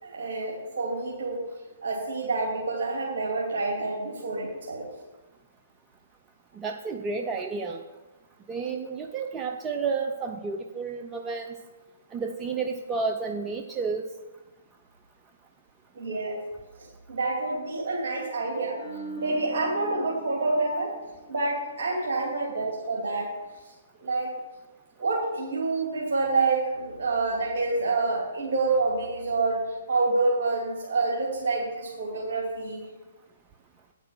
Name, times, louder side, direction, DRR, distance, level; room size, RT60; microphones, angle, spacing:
voice 1, 0.0-1.5 1.8-4.9 15.9-16.4 16.8-18.8 19.2-20.9 21.3-23.3 24.0-24.3 25.0-29.6 29.9-32.8, right 3 dB, 55° right, -3 dB, 2.6 m, -27 dB
voice 2, 6.6-7.8 8.5-11.5 12.1-14.0, right 4 dB, 20° right, 3 dB, 0.6 m, -31 dB
sound 1, 18.7-22.0 22.3-22.6, right 3 dB, 45° left, 3.1 m, -41 dB
9.3 x 6.1 x 7.2 m, 1.1 s
figure-of-eight pair, 125°, 0 cm